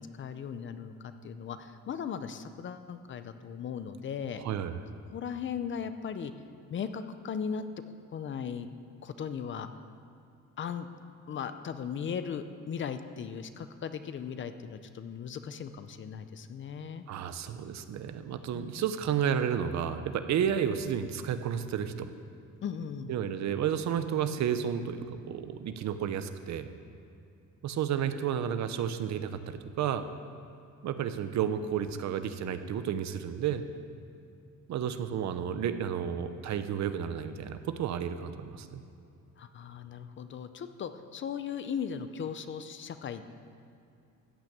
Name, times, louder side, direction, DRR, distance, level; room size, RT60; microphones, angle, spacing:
voice 1, 0.0-4.4 5.1-6.3 6.7-7.6 8.1-8.7 9.0-9.7 10.6-10.9 11.3-17.0 18.5-18.9 22.6-23.1 39.4-43.2, left 7 dB, 40° left, 10 dB, 0.5 m, -37 dB
voice 2, 4.4-4.8 17.1-22.1 23.1-26.7 27.6-30.0 30.8-33.6 34.7-38.8, right 8 dB, 60° right, 10 dB, 0.8 m, -31 dB
14.0 x 6.3 x 8.7 m, 2.6 s
cardioid pair, 165°, 31 cm